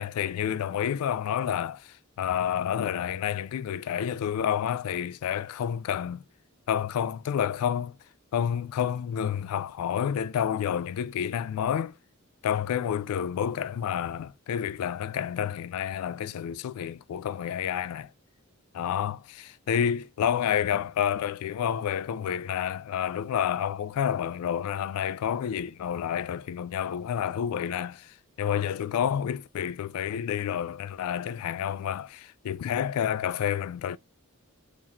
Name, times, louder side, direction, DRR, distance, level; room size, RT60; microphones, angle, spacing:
voice 1, 0.0-6.2 6.7-7.9 8.3-11.9 12.4-18.1 18.7-34.0, left 9 dB, 85° left, 0.3 m, -29 dB
3.9 x 3.0 x 2.7 m
head